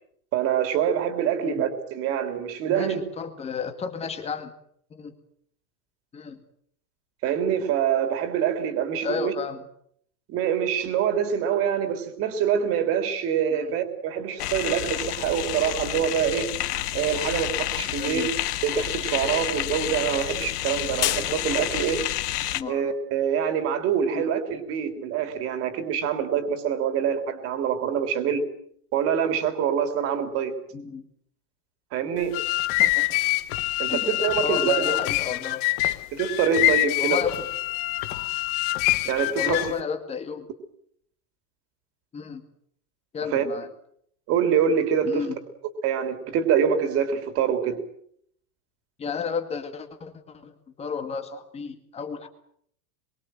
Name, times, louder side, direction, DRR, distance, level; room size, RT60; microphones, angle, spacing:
voice 1, 0.3-3.0 7.2-9.3 10.3-16.5 16.9-18.3 18.6-22.0 22.7-28.5 28.9-30.5 31.9-32.4 33.8-34.9 36.1-37.2 39.0-39.6 43.3-43.4 44.3-45.3 45.8-47.8, right 8 dB, 30° right, 8 dB, 3.4 m, -25 dB
voice 2, 2.7-4.5 4.9-5.1 6.1-6.4 9.0-9.6 13.5-13.7 18.0-18.3 22.5-22.8 24.1-24.3 30.7-31.1 32.8-33.2 33.9-34.1 34.4-35.6 37.0-37.5 39.4-40.5 42.1-42.4 43.1-43.7 45.0-45.4 49.0-52.3, left 6 dB, 15° left, 8 dB, 2.1 m, -32 dB
sound 1, 14.4-22.6, left 14 dB, 75° left, 1.7 m, -29 dB
sound 2, 32.2-39.8, left 18 dB, 30° left, 1.1 m, -25 dB
26.0 x 23.5 x 7.8 m, 0.68 s
supercardioid pair, 170°, 47 cm